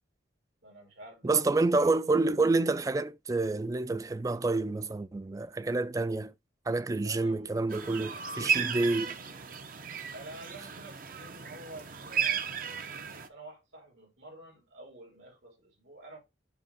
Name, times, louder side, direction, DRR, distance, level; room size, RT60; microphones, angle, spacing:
voice 1, 0.6-1.9 2.2-2.3 7.0-7.7 8.3-9.7 10.1-12.5 13.1-16.2, right 1 dB, 85° right, 3.3 m, -50 dB
voice 2, 1.2-6.3 6.7-9.1, right 3 dB, 20° right, 0.3 m, -28 dB
sound 1, 7.7-13.3, right 7 dB, 50° right, 0.7 m, -34 dB
6.9 x 2.9 x 5.6 m
head